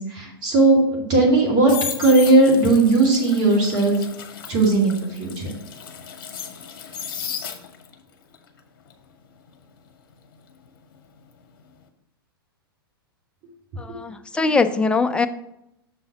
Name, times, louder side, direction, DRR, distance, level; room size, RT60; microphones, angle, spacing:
voice 1, 0.0-1.7 2.0-4.1 4.5-5.5 13.8-13.9, right 2 dB, 35° right, -3 dB, 2.3 m, -17 dB
sound 1, 1.2-8.0 8.3-11.2 11.5-11.8, left 7 dB, 60° left, 0.9 m, -35 dB
voice 2, 13.8-15.3, left 4 dB, 10° left, 9 dB, 0.4 m, -21 dB
6.6 x 4.0 x 5.7 m, 0.82 s
figure-of-eight pair, 105°, 13 cm